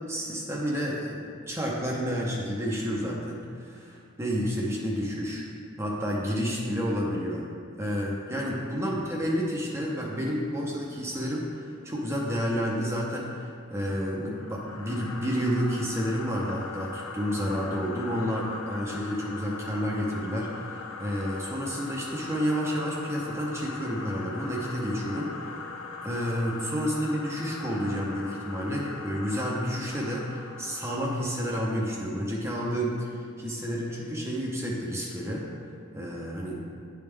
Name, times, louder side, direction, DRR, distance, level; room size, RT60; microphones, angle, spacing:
voice 1, 0.1-5.5 5.8-7.4 7.8-35.4 35.9-36.6, equal, 15° right, -4 dB, 0.6 m, -30 dB
sound 1, 14.3-31.3, left 4 dB, 75° left, 0.6 m, -41 dB
10.5 x 3.5 x 3.3 m, 2.3 s
head